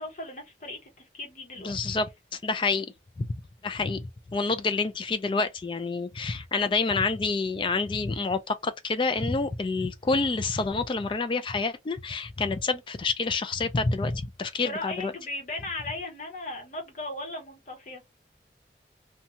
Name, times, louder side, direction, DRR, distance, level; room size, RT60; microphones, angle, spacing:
voice 1, 0.0-1.9 14.6-18.0, left 2 dB, 45° left, 1.0 m, -37 dB
voice 2, 1.6-2.1 2.4-2.9 3.2-3.3 3.6-4.1 4.3-15.1, left 3 dB, 30° left, 0.3 m, -28 dB
2.8 x 2.3 x 2.6 m
head